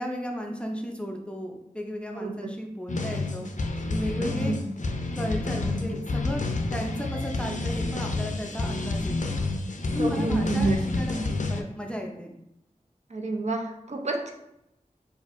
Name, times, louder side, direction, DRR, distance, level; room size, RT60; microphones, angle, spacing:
voice 1, 0.0-3.5 3.9-4.5 5.2-6.4 6.7-9.4 9.9-12.4, equal, 10° left, 1 dB, 0.5 m, -34 dB
voice 2, 2.1-2.5 4.2-4.6 10.0-10.8 13.1-14.3, right 3 dB, 55° right, 2 dB, 0.5 m, -28 dB
sound 1, 2.9-11.6, left 2 dB, 65° left, 0.4 m, -29 dB
4.4 x 2.5 x 2.5 m, 0.84 s
wide cardioid pair, 55°, 14 cm